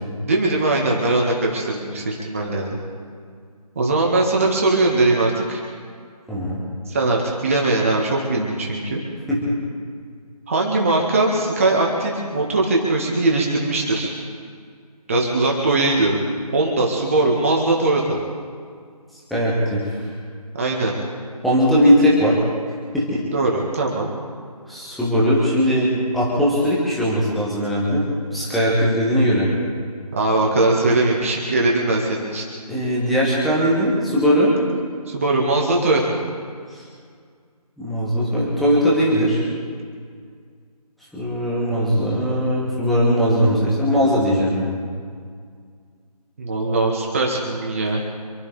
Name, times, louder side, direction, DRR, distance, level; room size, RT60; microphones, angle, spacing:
voice 1, 0.2-2.8 3.8-5.6 6.9-9.0 10.5-14.1 15.1-16.2 16.5-18.2 20.5-20.9 23.3-24.1 30.1-32.5 35.1-36.2 46.4-48.0, right 2 dB, 20° right, -2 dB, 1.9 m, -20 dB
voice 2, 6.3-6.6 9.3-9.6 19.3-20.0 21.4-22.4 22.9-23.2 24.7-28.1 28.3-29.5 32.7-34.5 36.7-36.8 37.8-39.4 41.1-44.7, equal, ahead, -8 dB, 1.3 m, -19 dB
27.5 x 12.5 x 3.6 m, 2.1 s
figure-of-eight pair, 160°, 20 cm